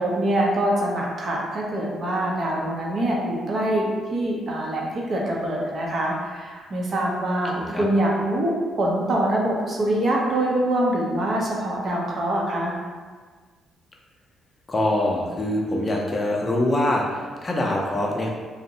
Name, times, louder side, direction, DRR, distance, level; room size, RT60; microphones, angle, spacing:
voice 1, 0.0-12.7, right 1 dB, 50° right, -2 dB, 0.6 m, -24 dB
voice 2, 7.6-7.9 14.7-18.3, left 1 dB, 25° left, -1 dB, 0.5 m, -24 dB
2.6 x 2.0 x 2.7 m, 1.5 s
cardioid pair, 90°, 0 cm